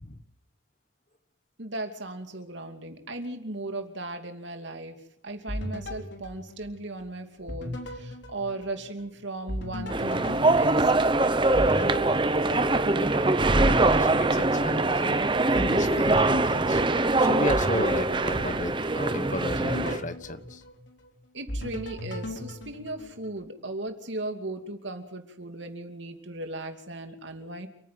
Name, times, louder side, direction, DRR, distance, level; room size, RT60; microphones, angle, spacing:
voice 1, 1.6-5.0 5.2-11.1 21.3-27.7, right 2 dB, 70° right, 6 dB, 2.8 m, -37 dB
sound 1, 5.5-7.1 7.5-9.1 9.5-13.1 13.5-15.1 15.5-19.0 19.5-21.1 21.5-23.4, left 1 dB, 70° left, 3.6 m, -37 dB
sound 2, 9.9-20.0, right 2 dB, 25° right, 0.9 m, -23 dB
voice 2, 12.4-15.3 15.5-16.8 17.2-20.6, left 1 dB, 40° left, 12 dB, 1.2 m, -34 dB
28.5 x 10.0 x 9.4 m, 0.71 s
head